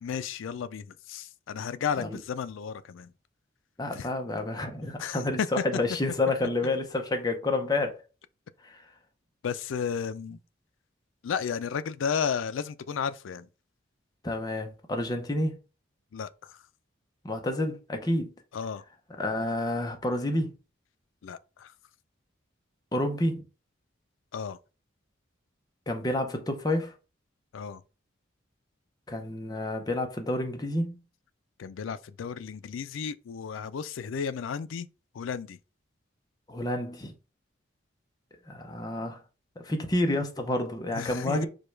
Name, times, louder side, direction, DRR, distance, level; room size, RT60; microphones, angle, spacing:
voice 1, 0.0-3.1 3.9-4.1 5.0-5.5 9.4-10.4 11.2-13.5 16.1-16.5 18.5-18.8 21.2-21.7 24.3-24.6 27.5-27.8 31.6-34.9 35.1-35.6 40.9-41.5, left 7 dB, 85° left, 0.4 m, -33 dB
voice 2, 3.8-8.0 8.6-8.8 14.2-15.6 17.2-18.3 19.2-20.5 22.9-23.4 25.9-26.9 29.1-31.0 36.5-37.1 38.5-39.2 39.6-41.5, left 1 dB, 20° left, 0.6 m, -29 dB
4.9 x 2.3 x 4.5 m
head